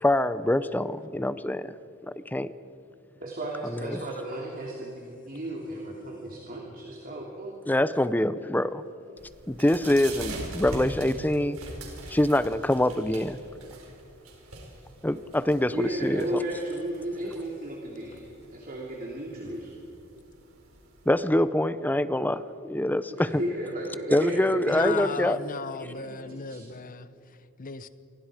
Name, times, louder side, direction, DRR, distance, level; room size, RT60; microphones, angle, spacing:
voice 1, 0.0-1.8 2.0-2.5 3.6-4.0 7.7-8.8 9.5-11.6 12.1-13.4 15.0-16.4 21.1-23.4 24.1-25.4, left 1 dB, 10° left, 14 dB, 0.6 m, -25 dB
voice 2, 3.2-7.6 15.7-18.3 18.5-19.7 23.2-25.0 25.8-26.6, right 1 dB, 40° right, -2 dB, 3.0 m, -34 dB
sound 1, 9.2-21.1, right 1 dB, 70° right, 5.0 m, -42 dB
voice 3, 24.7-27.9, left 4 dB, 40° left, 13 dB, 1.0 m, -36 dB
28.0 x 23.0 x 5.0 m, 2.8 s
head